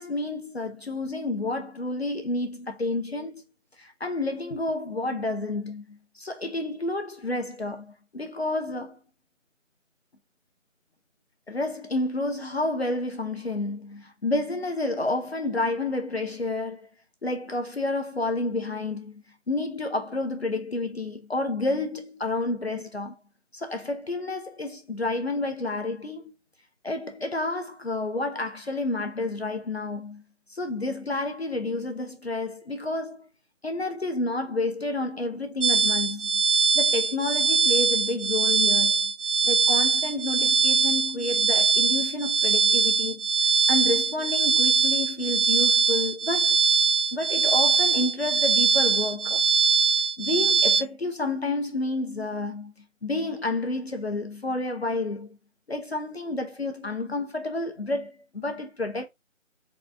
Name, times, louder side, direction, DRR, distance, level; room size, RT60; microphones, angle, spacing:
voice 1, 0.0-3.4 3.8-9.0 11.5-16.9 17.2-23.2 23.5-26.3 26.8-30.2 30.5-33.3 33.6-36.4 36.7-39.1 39.4-46.6 47.1-49.4 50.2-52.7 53.0-55.4 55.7-59.1, left 2 dB, 50° left, 0.7 m, -30 dB
sound 1, 35.6-50.8, right 5 dB, 65° right, 0.6 m, -22 dB
4.0 x 2.3 x 3.5 m
figure-of-eight pair, 165°, 39 cm